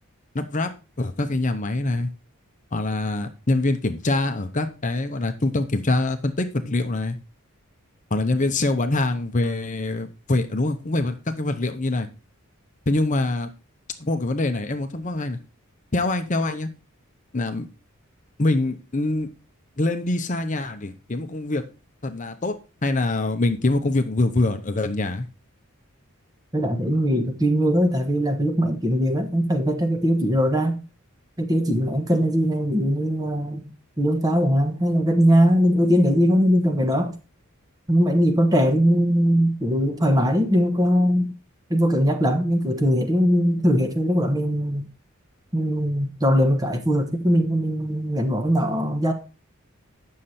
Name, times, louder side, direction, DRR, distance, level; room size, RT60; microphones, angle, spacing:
voice 1, 0.3-0.7 1.0-2.1 2.7-7.2 8.1-12.1 12.9-13.5 14.0-15.4 15.9-16.7 17.3-17.6 18.4-19.3 19.8-21.6 22.0-25.2, left 2 dB, 35° left, 0.8 m, -24 dB
voice 2, 26.5-30.8 31.4-33.7 34.0-37.1 37.9-41.3 41.7-44.8 45.5-49.1, equal, 15° right, 1.1 m, -20 dB
9.3 x 6.6 x 4.2 m
head